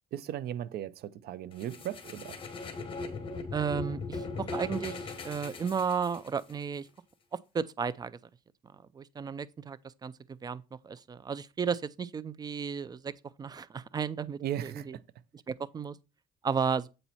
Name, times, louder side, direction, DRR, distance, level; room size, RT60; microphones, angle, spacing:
voice 1, 0.1-2.4 14.4-15.0, right 11 dB, 70° right, 0.6 m, -37 dB
sound 1, 1.6-6.5, left 3 dB, 30° left, 1.5 m, -39 dB
voice 2, 3.5-6.9 7.3-8.2 8.9-13.1 13.4-15.0 15.5-16.0 16.4-16.9, right 6 dB, 25° right, 0.4 m, -34 dB
7.9 x 4.4 x 4.1 m
cardioid pair, 110°, 17 cm